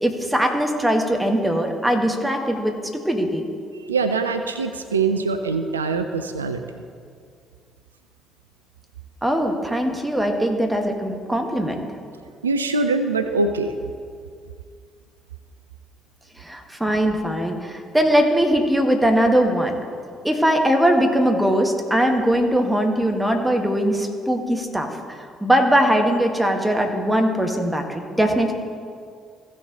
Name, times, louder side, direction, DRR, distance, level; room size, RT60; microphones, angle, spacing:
voice 1, 0.0-3.4 9.2-11.8 16.4-19.8 20.2-28.5, equal, 5° right, 2 dB, 1.6 m, -21 dB
voice 2, 3.9-6.6 12.4-13.7, right 3 dB, 80° right, 8 dB, 0.4 m, -23 dB
15.5 x 6.4 x 4.0 m, 2.2 s
figure-of-eight pair, 45°, 0 cm